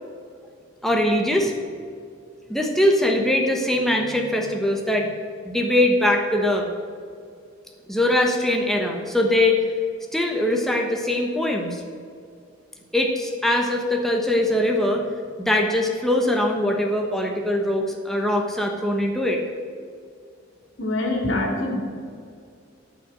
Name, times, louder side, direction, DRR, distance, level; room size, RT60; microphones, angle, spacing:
voice 1, 0.8-1.5 2.5-5.1 5.4-6.7 7.9-9.6 10.1-11.8 12.9-15.1 15.4-19.4, left 1 dB, ahead, 1 dB, 1.1 m, -22 dB
voice 2, 20.8-21.8, left 2 dB, 80° left, 1 dB, 2.7 m, -24 dB
14.0 x 5.8 x 7.8 m, 2.3 s
head